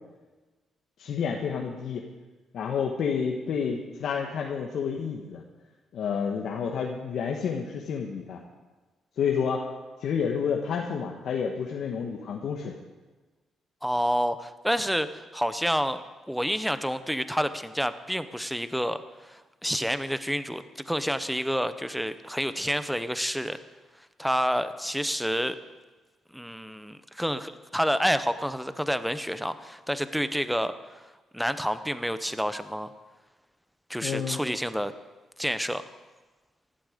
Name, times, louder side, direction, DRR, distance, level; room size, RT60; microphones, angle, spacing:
voice 1, 1.0-2.0 2.5-5.4 5.9-8.4 9.2-9.7 10.0-12.7 34.0-34.4, left 6 dB, 65° left, 0 dB, 1.3 m, -29 dB
voice 2, 13.8-16.0 16.3-23.6 24.2-25.6 26.3-31.0 31.3-32.9 33.9-34.9 35.4-35.8, equal, ahead, 12 dB, 0.8 m, -29 dB
15.5 x 12.0 x 5.1 m, 1.2 s
cardioid pair, 90°, 0 cm